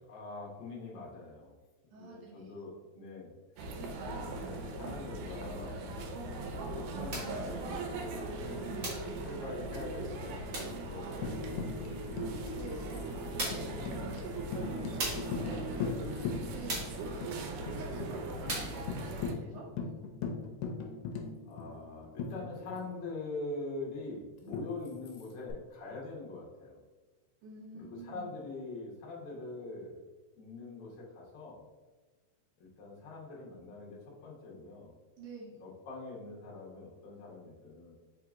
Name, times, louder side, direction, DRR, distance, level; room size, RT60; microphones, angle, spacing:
voice 1, 0.1-1.6 1.9-5.9 6.3-8.6 9.2-11.8 13.1-15.9 17.2-17.3 17.9-18.3 21.5-26.8 27.7-30.0 30.4-31.6 32.6-34.9 35.6-37.9, left 3 dB, 60° left, -4 dB, 1.7 m, -44 dB
voice 2, 1.9-2.5 12.5-12.8 16.5-17.1 17.7-19.7 27.4-28.3 35.2-35.5, right 3 dB, 70° right, -8 dB, 1.7 m, -47 dB
sound 1, 3.6-19.3, right 2 dB, 85° right, 2.1 m, -39 dB
sound 2, 7.1-7.4 8.8-9.1 10.5-10.8 12.6-12.7 13.4-13.8 15.0-15.4 16.7-17.0 18.5-18.8, right 2 dB, 55° right, 1.0 m, -37 dB
Tambourine, 11.2-16.9 17.2-17.3 17.7-18.1 18.5-18.6 18.9-23.0 24.5-25.5, left 4 dB, 85° left, 2.1 m, -40 dB
4.9 x 2.8 x 3.5 m, 1.3 s
omnidirectional pair, 3.5 m